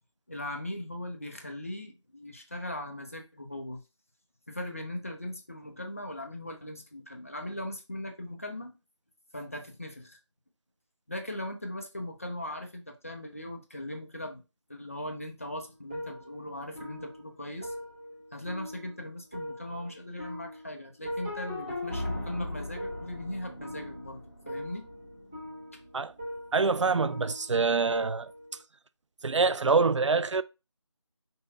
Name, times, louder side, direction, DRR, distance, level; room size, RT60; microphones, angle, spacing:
voice 1, 0.3-3.8 4.5-8.7 9.3-10.2 11.1-14.4 14.7-17.7 18.3-24.9, left 1 dB, 30° left, 0.6 m, -39 dB
sound 1, 15.4-28.6, left 1 dB, 10° right, 0.6 m, -40 dB
voice 2, 26.5-28.3 29.2-30.4, right 4 dB, 70° right, 0.4 m, -25 dB
5.4 x 2.2 x 4.0 m
figure-of-eight pair, 170°, 16 cm